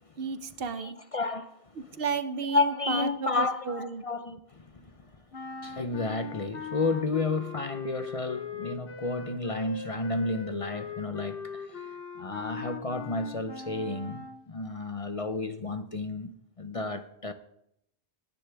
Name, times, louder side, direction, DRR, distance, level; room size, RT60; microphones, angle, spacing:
voice 1, 0.2-1.0 2.0-4.1, right 5 dB, 65° right, 1.0 m, -33 dB
voice 2, 0.8-1.5 2.5-5.1 5.6-17.3, left 3 dB, 40° left, 0.7 m, -32 dB
sound 1, 5.3-14.5, left 6 dB, 65° left, 1.2 m, -40 dB
16.5 x 10.0 x 3.4 m
omnidirectional pair, 1.1 m